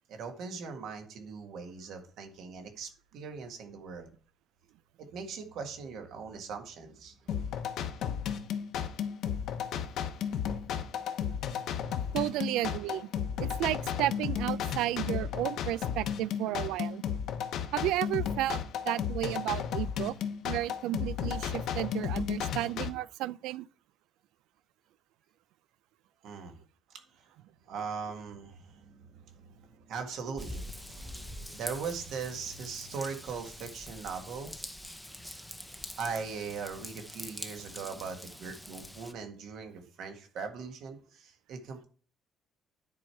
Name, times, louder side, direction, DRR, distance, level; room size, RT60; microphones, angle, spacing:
voice 1, 0.1-4.1 5.0-7.5 26.2-26.6 27.1-27.3 27.7-34.6 36.0-41.9, right 5 dB, 55° right, 1.7 m, -40 dB
sound 1, 7.3-22.9, left 8 dB, 60° left, 0.9 m, -34 dB
voice 2, 12.1-13.1 13.4-17.0 17.7-20.1 20.4-23.7, right 14 dB, 85° right, 0.3 m, -32 dB
Raindrop / Vehicle horn car horn honking / Trickle dribble, 30.4-39.1, equal, ahead, 0.6 m, -44 dB
10.5 x 4.7 x 4.6 m
cardioid pair, 170°, 0 cm